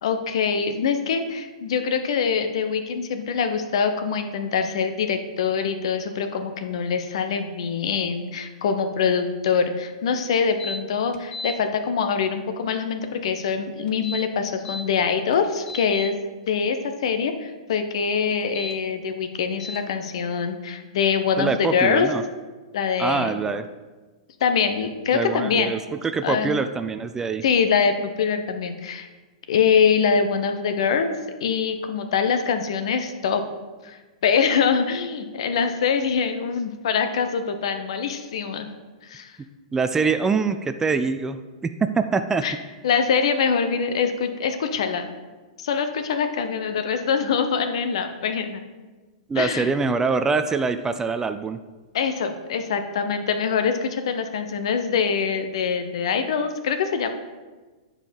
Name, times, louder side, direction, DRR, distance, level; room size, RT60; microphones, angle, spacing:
voice 1, 0.0-16.1 16.5-22.1 22.7-23.4 24.4-25.8 26.2-26.6 27.4-29.1 29.5-31.1 31.4-33.4 33.8-38.7 39.0-39.3 42.4-42.5 42.8-45.1 45.6-48.6 49.4-49.7 51.9-57.1, left 6 dB, 60° left, 7 dB, 0.9 m, -24 dB
sound 1, 10.6-10.8 11.1-11.5 13.9-14.8 15.3-16.1 18.4-18.7 19.6-19.8, left 2 dB, 25° left, 0.8 m, -34 dB
voice 2, 21.4-22.2 23.0-23.7 25.1-27.4 39.7-42.5 49.3-51.6, right 4 dB, 15° right, 10 dB, 0.4 m, -24 dB
9.0 x 4.9 x 5.3 m, 1.3 s
figure-of-eight pair, 105°, 3 cm